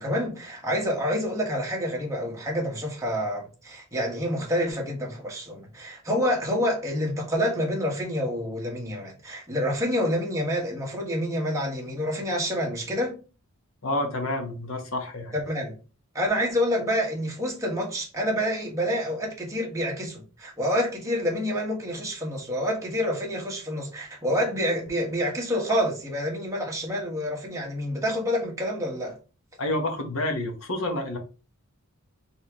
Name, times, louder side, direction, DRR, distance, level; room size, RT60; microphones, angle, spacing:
voice 1, 0.0-13.2 15.3-15.7 16.1-29.2, equal, 15° right, 1.4 m, -28 dB
voice 2, 13.8-15.3 29.6-31.2, left 1 dB, 65° left, 1.2 m, -29 dB
4.3 x 3.6 x 3.0 m
head